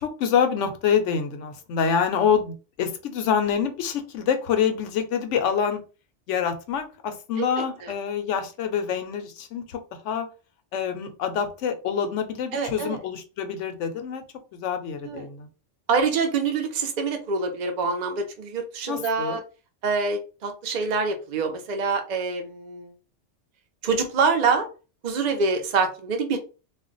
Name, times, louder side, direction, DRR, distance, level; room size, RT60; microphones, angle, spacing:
voice 1, 0.0-5.8 6.3-9.8 10.0-10.3 10.7-14.2 14.5-15.5 18.9-19.4, left 7 dB, 90° left, 7 dB, 1.0 m, -26 dB
voice 2, 7.4-7.9 12.5-13.0 15.0-15.3 15.9-19.4 19.8-22.9 23.8-24.7 25.0-26.4, right 4 dB, 50° right, 4 dB, 0.6 m, -25 dB
2.4 x 2.1 x 3.8 m, 0.34 s
omnidirectional pair, 1.2 m